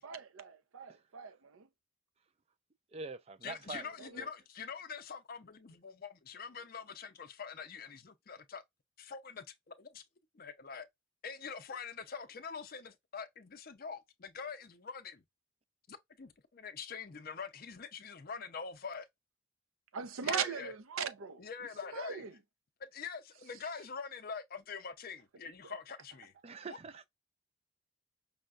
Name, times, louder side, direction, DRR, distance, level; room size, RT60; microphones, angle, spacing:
voice 1, 0.0-1.7 4.0-4.1 19.9-21.4 21.9-22.3, right 7 dB, 80° right, 0.6 m, -39 dB
voice 2, 2.9-3.9 4.2-4.3 26.4-27.1, right 4 dB, 30° right, 0.3 m, -44 dB
voice 3, 3.4-8.6 9.0-10.0 10.3-10.9 11.2-15.2 15.9-19.1 20.2-20.7 21.4-22.2 22.9-26.3 26.7-26.8, left 5 dB, 45° left, 0.5 m, -44 dB
5.5 x 2.2 x 2.4 m
head